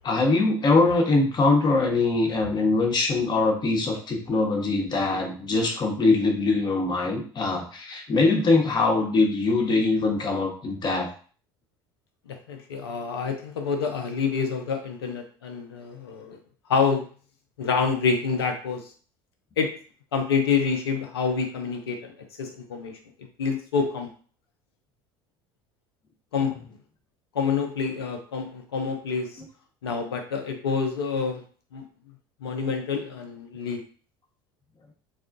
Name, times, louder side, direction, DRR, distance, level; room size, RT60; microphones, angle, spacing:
voice 1, 0.0-11.1, left 3 dB, 35° left, 2 dB, 1.0 m, -22 dB
voice 2, 12.3-16.4 16.7-17.1 17.6-18.8 19.6-19.7 20.1-22.1 22.4-23.0 23.4-24.1 26.3-26.6 27.3-29.4 29.8-31.4 31.7-31.8 32.4-33.8, left 5 dB, 80° left, 4 dB, 0.6 m, -27 dB
4.2 x 2.3 x 2.6 m, 0.42 s
hypercardioid pair, 70°, 13 cm